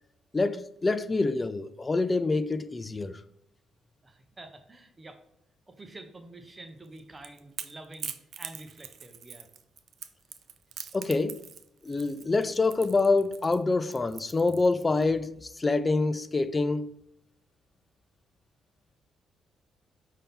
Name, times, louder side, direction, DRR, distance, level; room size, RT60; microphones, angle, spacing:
voice 1, 0.3-3.2 10.9-11.4 11.8-16.9, left 3 dB, 25° left, 0.3 m, -26 dB
voice 2, 4.0-5.2 5.7-9.5, right 2 dB, 25° right, 0.7 m, -48 dB
Crackle / Crack, 6.9-15.0, right 8 dB, 65° right, 0.3 m, -43 dB
5.4 x 2.7 x 3.6 m
cardioid pair, 90°, 0 cm